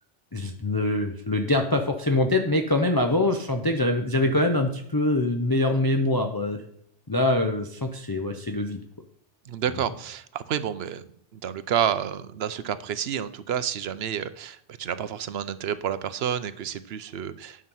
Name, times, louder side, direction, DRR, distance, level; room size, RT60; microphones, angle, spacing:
voice 1, 0.3-6.6 7.1-8.8, left 2 dB, 25° left, 4 dB, 0.6 m, -24 dB
voice 2, 9.5-11.1 11.3-17.7, right 9 dB, 65° right, 13 dB, 0.9 m, -30 dB
9.8 x 6.1 x 5.5 m, 0.71 s
omnidirectional pair, 1.2 m